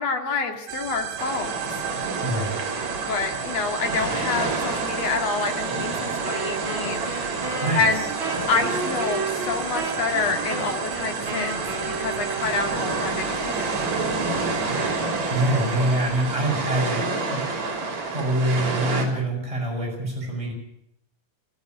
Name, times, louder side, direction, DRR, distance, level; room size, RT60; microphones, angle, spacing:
voice 1, 0.0-1.6 2.9-7.4 7.7-8.0 8.5-11.6 12.0-13.8, left 4 dB, 55° left, 4 dB, 3.3 m, -27 dB
sound 1, 0.7-16.4, right 9 dB, 75° right, 3.2 m, -35 dB
sound 2, 1.2-19.1, right 3 dB, 55° right, 4.7 m, -29 dB
voice 2, 2.2-2.6 7.6-7.9 15.3-17.4 18.1-20.5, right 1 dB, 10° right, -1 dB, 7.0 m, -25 dB
Wind instrument woodwind instrument, 6.2-13.1, right 3 dB, 40° right, 4.6 m, -33 dB
19.5 x 14.5 x 9.4 m, 0.76 s
omnidirectional pair, 3.7 m